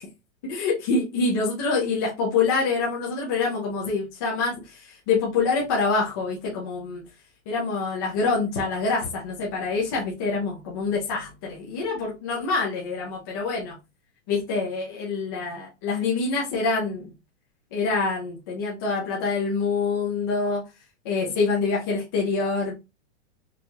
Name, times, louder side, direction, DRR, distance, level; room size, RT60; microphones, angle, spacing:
voice 1, 0.4-7.0 7.5-13.8 14.3-17.1 17.7-20.6 21.0-22.7, left 4 dB, 20° left, -4 dB, 0.5 m, -26 dB
4.5 x 2.4 x 2.9 m, 0.25 s
supercardioid pair, 180°, 35 cm